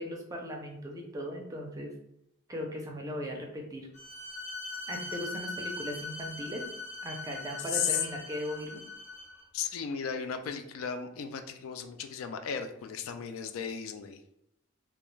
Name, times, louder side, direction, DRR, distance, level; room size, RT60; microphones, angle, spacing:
voice 1, 0.0-2.0 2.5-3.9 4.9-6.7 7.0-8.8, equal, 15° right, 0 dB, 0.4 m, -38 dB
Bowed string instrument, 3.9-9.4, left 2 dB, 55° left, 0.7 m, -41 dB
voice 2, 9.5-14.2, left 7 dB, 80° left, 8 dB, 0.3 m, -35 dB
2.3 x 2.1 x 3.1 m, 0.83 s
head